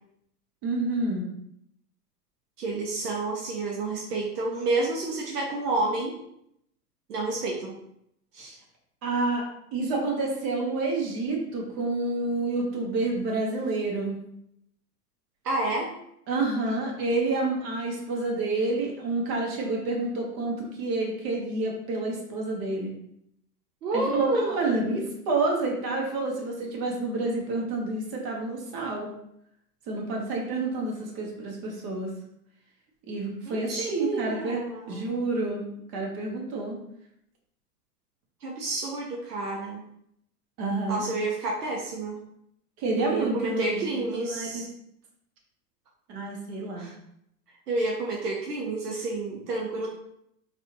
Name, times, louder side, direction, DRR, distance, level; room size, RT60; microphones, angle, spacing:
voice 1, 0.6-1.2 9.0-14.2 16.3-22.9 23.9-29.1 29.9-32.1 33.1-34.6 34.9-36.8 40.6-41.0 42.8-44.6 46.1-46.9, right 2 dB, 45° right, -1 dB, 1.3 m, -29 dB
voice 2, 2.6-6.1 7.1-7.8 8.3-8.6 15.4-15.9 23.8-24.6 33.5-35.1 38.4-39.8 40.9-42.2 43.0-44.7 46.8-46.9 47.7-49.9, right 2 dB, 75° right, -2 dB, 0.9 m, -29 dB
4.1 x 2.6 x 2.9 m, 0.75 s
hypercardioid pair, 100°, 48 cm